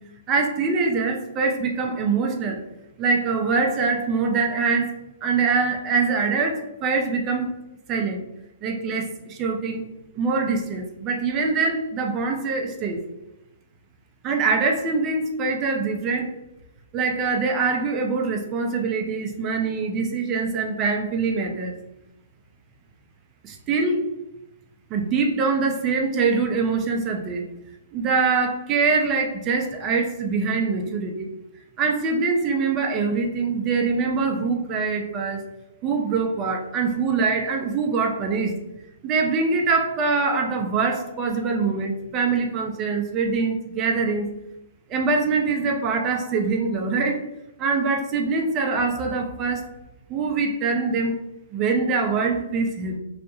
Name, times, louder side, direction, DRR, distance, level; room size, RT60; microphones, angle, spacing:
voice 1, 0.3-2.6 3.0-4.9 5.2-7.5 7.9-8.2 8.6-9.8 10.2-13.0 14.2-16.3 16.9-21.7 23.4-24.0 24.9-27.4 27.9-31.3 31.8-35.4 35.8-38.5 39.0-44.3 44.9-47.2 47.6-49.7 50.1-51.2 51.5-53.0, right 4 dB, 25° right, 2 dB, 0.4 m, -24 dB
2.2 x 2.0 x 2.9 m, 0.93 s
hypercardioid pair, 140°, 0 cm